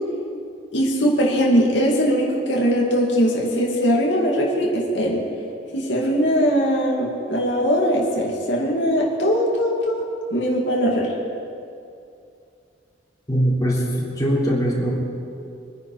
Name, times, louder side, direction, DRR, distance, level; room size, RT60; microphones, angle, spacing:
voice 1, 0.7-5.2 5.7-10.0 10.3-11.1, equal, 80° left, -2 dB, 2.4 m, -20 dB
voice 2, 13.3-14.9, equal, 20° left, -5 dB, 3.3 m, -21 dB
24.5 x 10.5 x 4.9 m, 2.5 s
head